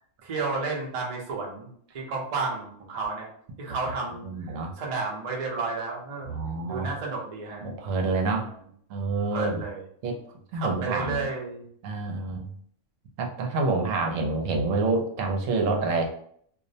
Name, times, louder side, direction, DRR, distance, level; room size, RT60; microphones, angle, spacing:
voice 1, 0.2-3.3 3.6-6.3 6.7-7.7 8.0-8.5 9.3-9.8 10.5-11.7, right 4 dB, 45° right, -2 dB, 0.5 m, -32 dB
voice 2, 4.2-4.7 6.3-6.9 7.6-8.5 8.9-9.6 10.0-10.2 10.5-11.3 11.8-12.5 13.2-16.1, right 3 dB, 80° right, 2 dB, 0.9 m, -27 dB
2.5 x 2.0 x 2.6 m, 0.63 s
omnidirectional pair, 1.4 m